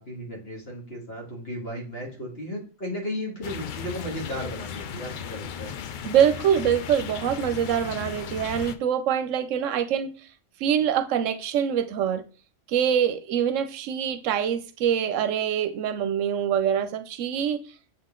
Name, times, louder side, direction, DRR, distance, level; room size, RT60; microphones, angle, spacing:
voice 1, 0.0-5.8, equal, 50° left, 1.9 m, -35 dB
sound 1, 3.4-8.8, left 8 dB, 65° left, 0.4 m, -36 dB
voice 2, 6.0-10.1 10.6-12.2 12.7-17.6, right 9 dB, 75° right, 0.9 m, -24 dB
7.3 x 3.8 x 3.7 m
omnidirectional pair, 1.3 m